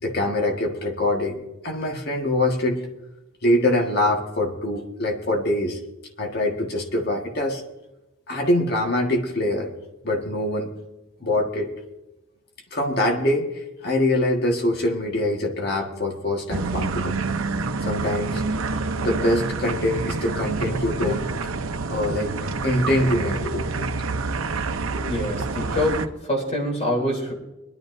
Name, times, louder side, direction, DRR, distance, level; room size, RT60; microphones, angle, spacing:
voice 1, 0.0-2.8 3.4-5.8 6.2-7.6 8.3-9.7 10.0-10.7 11.2-11.7 12.7-17.2 17.8-18.4 19.0-21.3 21.9-22.4 22.6-23.8 24.9-25.1, left 1 dB, 50° left, 2 dB, 1.7 m, -24 dB
sound 1, 16.5-26.1, right 3 dB, 85° right, 0.7 m, -27 dB
voice 2, 25.1-27.3, left 1 dB, 30° left, 0 dB, 3.3 m, -25 dB
22.0 x 11.5 x 2.7 m, 0.98 s
head